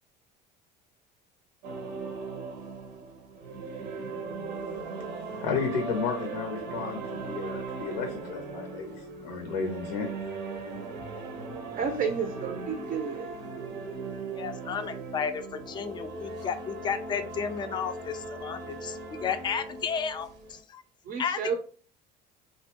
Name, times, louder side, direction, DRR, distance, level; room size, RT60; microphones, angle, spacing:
sound 1, 1.6-20.6, right 3 dB, 80° right, 0.6 m, -38 dB
voice 1, 5.4-8.9 9.2-10.1, left 5 dB, 80° left, 0.5 m, -32 dB
voice 2, 11.7-13.3 21.0-21.6, right 6 dB, 40° right, 0.4 m, -31 dB
voice 3, 14.3-20.8 21.2-21.6, left 7 dB, 20° left, 0.3 m, -33 dB
2.5 x 2.1 x 2.8 m
hypercardioid pair, 70°, 21 cm